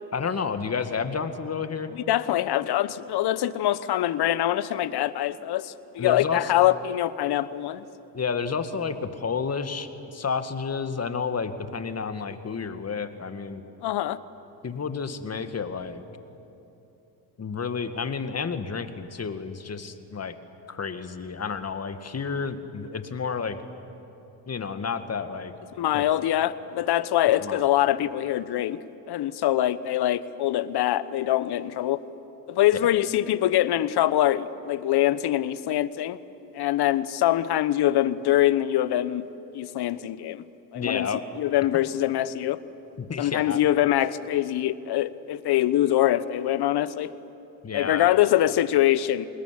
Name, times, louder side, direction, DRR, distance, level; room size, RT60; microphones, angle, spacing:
voice 1, 0.1-1.9 6.0-6.5 8.1-13.6 14.6-16.0 17.4-20.4 20.7-23.6 24.5-25.5 25.9-26.0 27.4-27.7 32.7-32.8 40.7-41.2 43.0-43.6 47.6-48.1, left 5 dB, 30° left, 9 dB, 2.1 m, -30 dB
voice 2, 2.1-7.8 13.8-14.2 25.8-28.8 29.1-32.0 32.5-36.2 36.5-39.3 39.5-40.4 40.7-41.1 41.4-42.6 43.2-47.1 47.7-49.2, left 13 dB, 50° left, 16 dB, 1.1 m, -24 dB
26.5 x 20.5 x 10.0 m, 3.0 s
hypercardioid pair, 65°, 48 cm